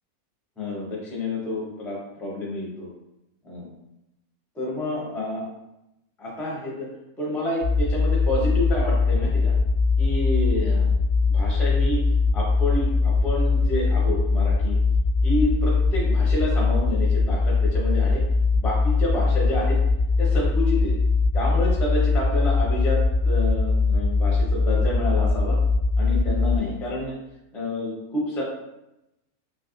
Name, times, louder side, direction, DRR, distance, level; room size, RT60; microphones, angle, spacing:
voice 1, 0.6-2.9 3.4-3.7 4.5-5.4 6.2-6.9 7.2-9.5 10.0-12.0 12.3-14.8 15.2-18.2 18.5-19.8 20.2-20.9 21.3-23.0 23.2-25.6 26.0-27.2 27.5-28.4, left 1 dB, ahead, -4 dB, 0.3 m, -29 dB
sound 1, 7.6-26.6, left 3 dB, 65° left, 0.7 m, -21 dB
3.3 x 2.6 x 2.5 m, 0.90 s
omnidirectional pair, 1.6 m